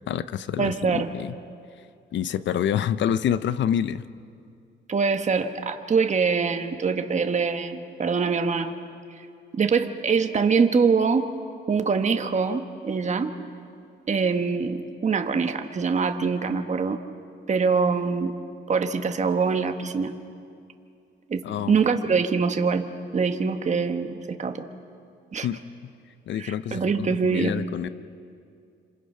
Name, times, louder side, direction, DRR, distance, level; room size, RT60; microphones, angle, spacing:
voice 1, 0.1-1.3 2.1-4.0 21.4-21.8 25.4-25.6 26.3-27.9, left 9 dB, 65° left, 14 dB, 0.8 m, -27 dB
voice 2, 0.6-1.1 4.9-8.7 9.5-11.3 11.7-13.3 14.1-17.0 17.5-18.3 18.7-20.1 21.3-22.9 23.1-24.7 25.3-25.5 26.4-27.5, right 5 dB, 35° right, 6 dB, 1.4 m, -24 dB
28.0 x 26.0 x 5.7 m, 2.4 s
cardioid pair, 90°, 20 cm